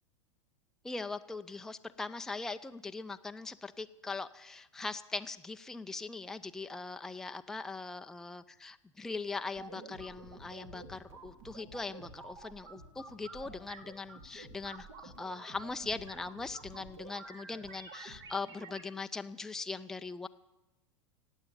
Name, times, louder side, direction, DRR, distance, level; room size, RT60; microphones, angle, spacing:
voice 1, 0.8-20.3, left 3 dB, 5° left, 8 dB, 0.4 m, -41 dB
sound 1, 9.5-18.8, right 3 dB, 55° right, 2.5 m, -50 dB
sound 2, 10.2-12.6 13.2-13.3 13.9-14.0, left 4 dB, 75° right, 5.4 m, -64 dB
17.0 x 8.1 x 8.8 m, 0.99 s
figure-of-eight pair, 90°, 16 cm